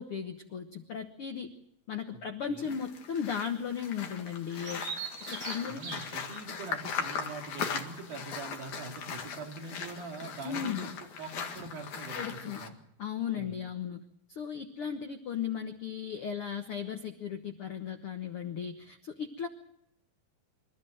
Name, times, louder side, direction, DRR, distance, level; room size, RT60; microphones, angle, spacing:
voice 1, 0.0-1.5 1.9-4.9 5.3-5.8 10.4-10.9 12.1-12.6 13.0-14.0 14.3-19.5, left 7 dB, 85° left, 6 dB, 1.2 m, -36 dB
voice 2, 2.1-2.8 5.7-12.8 13.3-13.6, right 4 dB, 70° right, 2 dB, 4.3 m, -43 dB
sound 1, 2.6-12.7, left 6 dB, 55° left, 3.0 m, -39 dB
Bird vocalization bird call bird song, 4.6-10.3, right 5 dB, 45° right, 4.2 m, -45 dB
27.0 x 14.0 x 7.8 m, 0.78 s
omnidirectional pair, 4.4 m